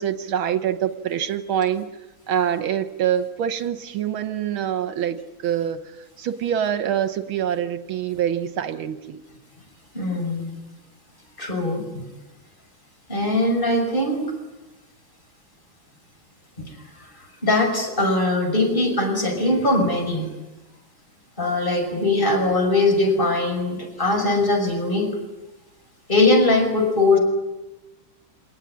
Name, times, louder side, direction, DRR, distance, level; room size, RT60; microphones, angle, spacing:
voice 1, 0.0-1.9 2.3-5.8 6.2-9.2, right 9 dB, 80° right, 9 dB, 1.9 m, -25 dB
voice 2, 9.9-10.5 11.4-12.0 13.1-14.3 17.0-17.1 17.4-20.3 21.4-25.2 26.1-27.2, left 2 dB, 25° left, 3 dB, 6.1 m, -21 dB
27.0 x 19.0 x 9.9 m, 1.1 s
omnidirectional pair, 2.3 m